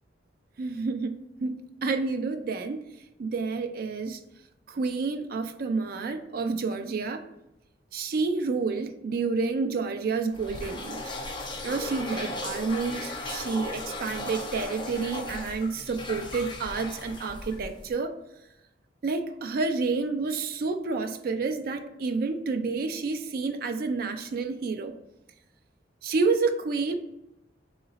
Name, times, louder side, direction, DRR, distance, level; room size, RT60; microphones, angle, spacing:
voice 1, 0.6-2.8 3.2-4.2 4.7-7.3 7.9-11.0 11.6-18.1 19.0-24.9 26.0-27.0, right 4 dB, 55° right, 7 dB, 0.4 m, -29 dB
sound 1, 10.3-18.0, left 2 dB, 25° left, 0.6 m, -37 dB
3.9 x 3.0 x 3.9 m, 0.91 s
head